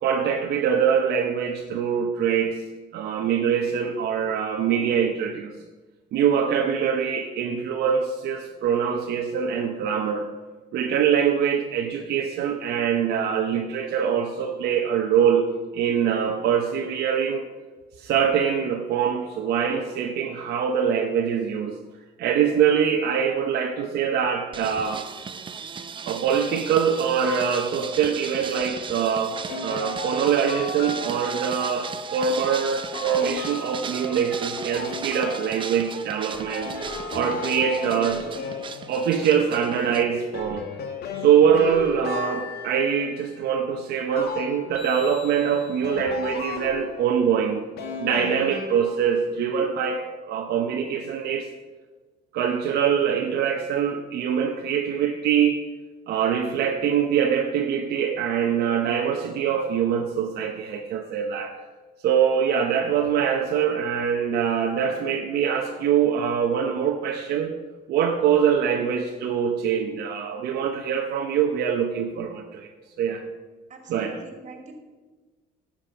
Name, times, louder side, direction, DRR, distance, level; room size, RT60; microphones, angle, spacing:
voice 1, 0.0-2.6 2.9-5.5 6.1-10.3 10.7-17.5 18.0-21.8 22.2-25.1 26.1-36.7 37.1-38.3 38.9-40.7 41.1-47.7 48.0-51.5 52.3-55.6 56.1-61.6 62.0-67.6 67.9-72.7 73.0-73.2 73.9-74.2, right 7 dB, 70° right, 2 dB, 0.9 m, -24 dB
sound 1, 24.5-40.0, right 6 dB, 30° right, 0.7 m, -36 dB
sound 2, 29.5-31.4 32.8-35.9 36.3-39.4 39.8-43.4 44.1-47.2 47.8-49.2, left 5 dB, 70° left, 1.6 m, -35 dB
voice 2, 73.7-74.7, right 3 dB, 45° right, 4 dB, 2.3 m, -43 dB
11.0 x 7.6 x 5.7 m, 1.3 s
cardioid pair, 110°, 17 cm